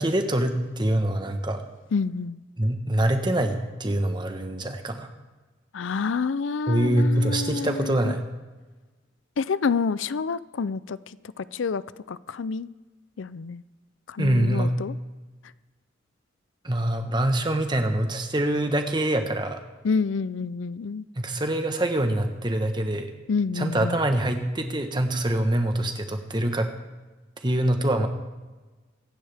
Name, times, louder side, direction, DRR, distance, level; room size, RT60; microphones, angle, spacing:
voice 1, 0.0-1.6 2.6-5.1 6.7-8.2 14.2-14.7 16.6-19.6 21.1-23.1 23.5-26.7 27.4-28.1, right 1 dB, 25° right, 6 dB, 1.2 m, -24 dB
voice 2, 1.9-2.4 5.7-8.1 9.4-11.8 12.1-12.7 13.2-13.6 14.1-14.9 19.8-21.0 23.3-24.0, left 5 dB, 80° left, 17 dB, 0.5 m, -28 dB
24.0 x 11.0 x 3.5 m, 1.2 s
head